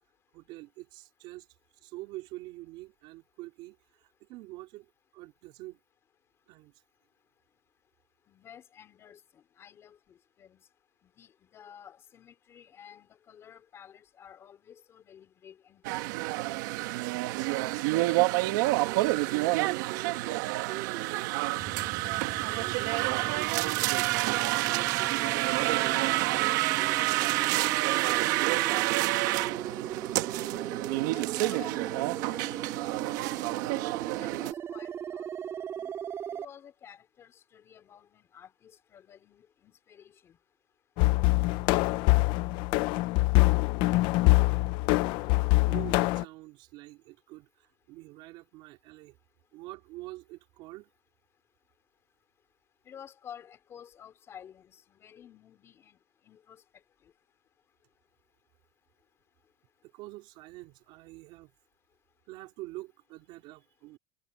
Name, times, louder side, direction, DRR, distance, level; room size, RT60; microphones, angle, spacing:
voice 1, 0.3-1.5 1.8-5.8 6.5-6.8 18.7-21.3 22.6-24.1 24.6-27.5 27.9-29.9 44.2-44.8 45.0-45.4 45.6-49.2 49.5-50.9 59.8-61.5 62.3-64.0, right 20 dB, 50° right, 4.2 m, -45 dB
voice 2, 8.3-10.6 11.0-16.4 31.1-33.7 34.1-35.3 35.8-35.9 36.3-40.4 52.8-56.0 56.2-56.6 57.0-57.1, left 9 dB, 25° left, 4.0 m, -52 dB
sound 1, 15.8-34.5, right 20 dB, 70° right, 1.8 m, -28 dB
sound 2, 21.6-36.5, right 9 dB, 25° right, 4.4 m, -39 dB
sound 3, 41.0-46.2, left 20 dB, 50° left, 0.8 m, -24 dB
cardioid pair, 170°, 10 cm